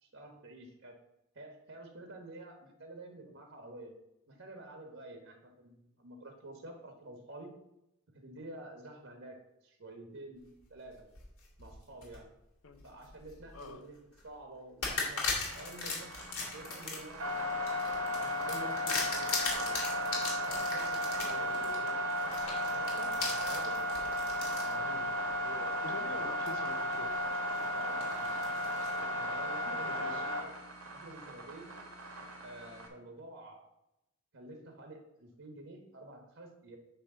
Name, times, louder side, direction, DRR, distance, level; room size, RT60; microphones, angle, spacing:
voice 1, 0.0-1.0 1.3-3.9 4.3-7.6 8.1-11.1 11.6-12.3 12.8-14.0 14.2-15.3 15.5-17.8 18.2-19.8 20.5-21.7 22.3-25.1 25.4-25.7 27.7-28.4 28.9-30.5 30.9-31.8 32.4-33.6 34.3-36.8, right 2 dB, 60° right, 1.2 m, -49 dB
sound 1, 10.9-12.2 12.7-13.7 14.1-14.3 14.8-24.7 25.3-25.4 26.5-26.9 27.3-29.0, left 4 dB, 90° left, 2.6 m, -38 dB
voice 2, 13.5-13.9 21.2-22.1 25.8-27.2 29.8-30.3, left 3 dB, 70° left, 0.8 m, -46 dB
sound 2, 15.3-32.9, equal, 90° right, 1.9 m, -35 dB
9.0 x 3.3 x 6.7 m
head